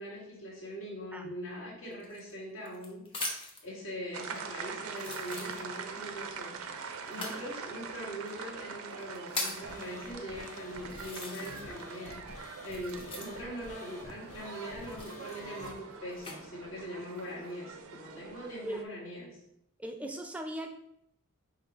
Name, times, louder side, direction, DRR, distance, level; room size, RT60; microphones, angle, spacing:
voice 1, 0.0-19.4, equal, 60° left, -4 dB, 1.6 m, -42 dB
sound 1, 2.0-3.7 4.4-4.5 4.9-6.0 7.1-7.4 8.3-8.4 8.9-9.7 10.4-10.5 10.9-11.8 12.1-13.6 14.8-16.4 17.0-17.5, left 2 dB, 25° left, 0.8 m, -40 dB
sound 2, 4.1-18.8, right 5 dB, 70° right, 0.4 m, -44 dB
sound 3, 9.6-15.7, left 1 dB, 85° left, 0.8 m, -49 dB
voice 2, 19.8-20.7, right 1 dB, 5° right, 4 dB, 0.3 m, -39 dB
5.6 x 2.0 x 4.6 m, 0.79 s
head